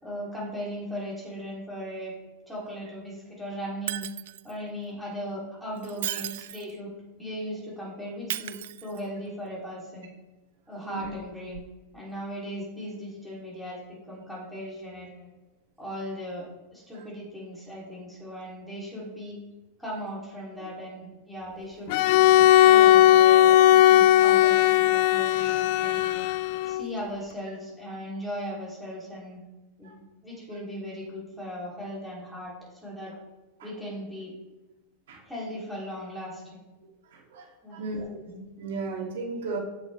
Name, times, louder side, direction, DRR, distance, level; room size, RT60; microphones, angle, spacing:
voice 1, 0.0-2.1 2.5-4.0 4.4-6.9 7.2-10.1 10.7-11.6 11.9-15.3 15.8-16.5 16.7-19.4 19.8-22.0 22.4-26.0 26.6-29.4 29.8-33.1 33.6-34.3 35.2-36.6 37.6-37.8, equal, ahead, -7 dB, 2.9 m, -37 dB
Shatter, 3.9-4.5 5.8-6.8 8.3-9.3 11.5-11.6, right 13 dB, 70° right, 0.3 m, -35 dB
Bowed string instrument, 21.9-26.9, left 13 dB, 50° left, 0.4 m, -18 dB
voice 2, 37.7-39.6, right 3 dB, 90° right, -1 dB, 2.5 m, -34 dB
14.5 x 6.5 x 3.3 m, 1.1 s
supercardioid pair, 160°, 0 cm